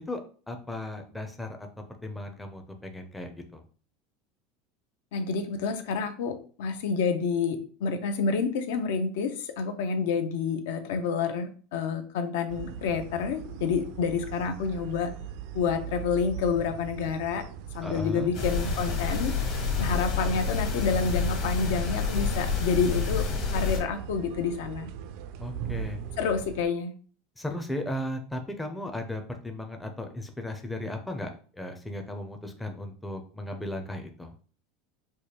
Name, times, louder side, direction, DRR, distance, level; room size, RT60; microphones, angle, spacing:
voice 1, 0.5-1.7 2.0-3.6 17.8-18.3 25.4-26.0 27.4-34.3, left 1 dB, 5° left, 4 dB, 0.4 m, -36 dB
voice 2, 5.1-15.1 15.5-17.4 17.7-19.3 19.8-23.2 23.5-24.9 26.2-26.9, left 5 dB, 75° left, 8 dB, 0.5 m, -28 dB
sound 1, 12.5-26.7, right 8 dB, 60° right, 0.3 m, -40 dB
sound 2, 18.3-23.8, left 5 dB, 50° left, 1.2 m, -28 dB
4.7 x 2.2 x 2.8 m, 0.40 s
supercardioid pair, 160°, 0 cm